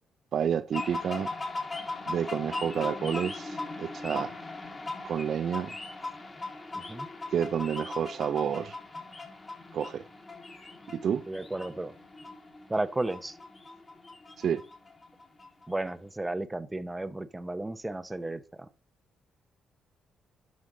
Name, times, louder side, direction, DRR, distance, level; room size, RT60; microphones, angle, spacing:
voice 1, 0.3-1.3 2.1-4.4 5.0-5.7 7.3-8.8 9.7-10.0 10.9-11.3 14.4-14.6, right 8 dB, 60° right, 0.4 m, -30 dB
sound 1, 0.7-15.9, left 3 dB, 30° left, 2.6 m, -39 dB
voice 2, 6.7-7.1 11.3-11.9 12.7-13.4 15.7-18.7, right 2 dB, 15° right, 0.7 m, -33 dB
11.5 x 5.2 x 3.8 m
cardioid pair, 90°, 0 cm